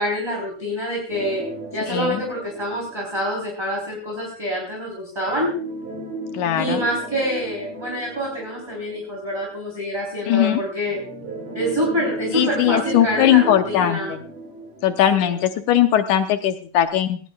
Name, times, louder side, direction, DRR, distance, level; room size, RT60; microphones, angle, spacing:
voice 1, 0.0-1.4 1.7-5.5 6.5-11.0 11.5-14.1 15.1-15.4, equal, 5° right, -2 dB, 3.3 m, -26 dB
sound 1, 1.1-3.8 5.3-9.6 10.9-15.8 16.1-16.2 16.8-16.9, right 2 dB, 50° right, 4.6 m, -34 dB
voice 2, 1.9-2.2 6.3-6.8 10.3-10.6 12.3-14.2 14.8-17.2, left 11 dB, 75° left, 8 dB, 2.0 m, -19 dB
19.0 x 18.5 x 2.3 m, 0.41 s
omnidirectional pair, 4.2 m